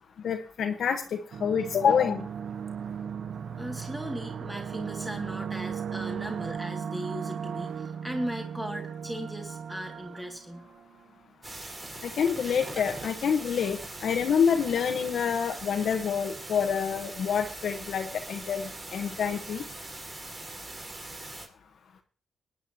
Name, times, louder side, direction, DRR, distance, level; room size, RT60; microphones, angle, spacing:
voice 1, 0.2-2.2 12.0-19.6, left 7 dB, 70° left, 4 dB, 1.1 m, -27 dB
sound 1, 1.3-11.1, right 7 dB, 65° right, 0.5 m, -37 dB
voice 2, 3.6-10.7, equal, 5° right, 3 dB, 2.1 m, -37 dB
sound 2, 11.4-21.5, right 2 dB, 35° right, 4.7 m, -41 dB
18.5 x 9.4 x 2.8 m, 0.42 s
supercardioid pair, 55°, 0 cm